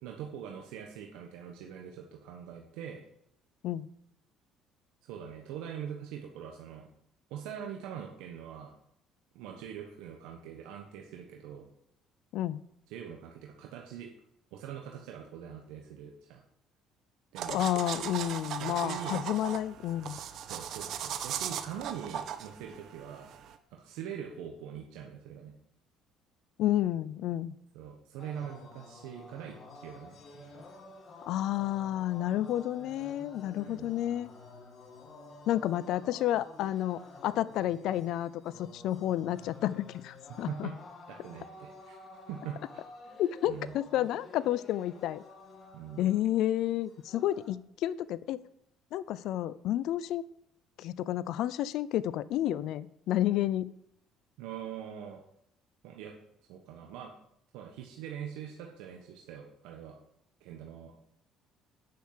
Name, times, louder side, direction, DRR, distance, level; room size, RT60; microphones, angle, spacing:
voice 1, 0.0-3.0 5.0-6.9 7.3-8.7 9.3-11.7 12.9-14.1 14.5-16.4 17.3-17.7 18.6-19.2 20.4-23.3 23.7-25.5 27.7-30.6 33.5-34.0 40.5-40.8 41.1-42.0 42.3-42.8 43.4-43.7 45.7-46.1 54.4-55.3 55.8-56.1 56.5-57.1 57.5-60.0 60.4-60.9, right 9 dB, 80° right, 1 dB, 1.3 m, -43 dB
sound 1, 17.4-23.6, right 9 dB, 65° right, 1.1 m, -38 dB
voice 2, 17.5-20.2 26.6-27.5 31.3-34.3 35.5-40.7 43.2-45.2 46.0-48.4 48.9-50.2 50.8-53.7, left 13 dB, 70° left, 18 dB, 0.5 m, -31 dB
sound 2, 28.2-47.5, left 3 dB, 45° left, 2.3 m, -51 dB
9.3 x 6.5 x 7.6 m, 0.73 s
supercardioid pair, 85°, 0 cm